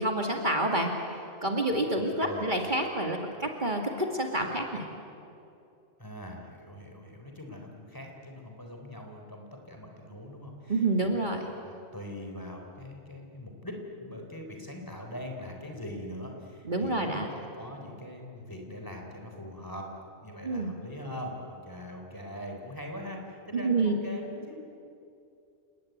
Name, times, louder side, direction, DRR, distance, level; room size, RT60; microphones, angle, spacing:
voice 1, 0.0-4.9 10.7-11.5 16.6-17.3 20.4-20.7 23.5-23.9, right 2 dB, 40° right, 2 dB, 2.4 m, -28 dB
voice 2, 2.0-2.5 6.0-11.2 11.6-19.9 20.2-24.6, left 1 dB, 15° left, 2 dB, 4.0 m, -42 dB
30.0 x 19.0 x 9.4 m, 2.6 s
omnidirectional pair, 1.2 m